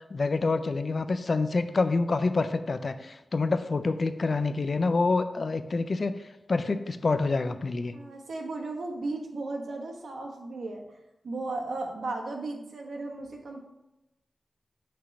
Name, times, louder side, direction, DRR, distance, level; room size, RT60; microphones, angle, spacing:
voice 1, 0.1-6.1 6.5-7.9, left 3 dB, 55° left, 10 dB, 0.4 m, -27 dB
voice 2, 7.9-10.8 11.2-13.6, right 2 dB, 85° right, 1 dB, 1.0 m, -35 dB
6.0 x 3.1 x 5.7 m, 0.95 s
wide cardioid pair, 70°, 0 cm